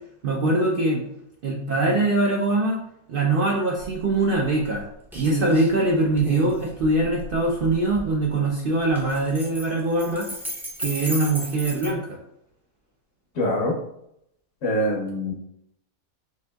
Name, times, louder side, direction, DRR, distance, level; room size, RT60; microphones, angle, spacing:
voice 1, 0.2-1.0 1.4-2.8 3.1-4.9 5.1-10.3 10.8-12.1, right 2 dB, 60° right, -2 dB, 0.5 m, -22 dB
sound 1, 3.8-3.9 4.3-4.8 5.1-5.7 6.2-8.1 8.9-11.9, right 1 dB, 5° right, 0.4 m, -33 dB
voice 2, 13.3-13.8 14.6-15.3, equal, 65° left, -2 dB, 1.1 m, -24 dB
6.3 x 2.6 x 2.3 m, 0.76 s
omnidirectional pair, 1.5 m